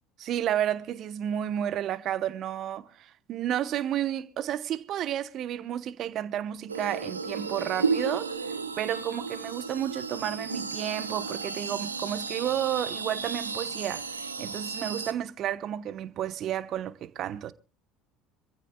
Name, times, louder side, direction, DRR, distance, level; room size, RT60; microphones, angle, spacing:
voice 1, 0.2-8.4 8.8-17.5, right 11 dB, 50° right, 1.0 m, -31 dB
sound 1, 6.7-15.1, right 4 dB, 90° right, 1.2 m, -33 dB
26.0 x 15.0 x 2.3 m
figure-of-eight pair, 65°, 0 cm